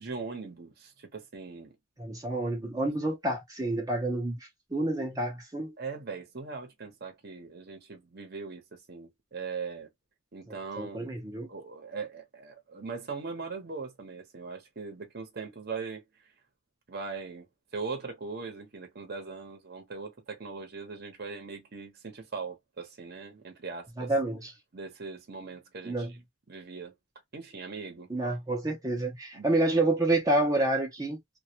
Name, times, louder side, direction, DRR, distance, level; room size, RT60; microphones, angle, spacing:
voice 1, 0.0-1.7 5.8-9.9 10.3-11.1 11.5-16.0 16.9-17.5 17.7-24.1 24.7-26.1 26.5-26.9 27.3-28.1 29.3-29.5, right 4 dB, 50° right, 0.8 m, -40 dB
voice 2, 2.0-4.4 4.7-5.7 10.5-11.5 24.0-24.5 25.8-26.1 28.1-31.2, right 2 dB, 20° right, 0.5 m, -28 dB
2.2 x 2.1 x 2.7 m
head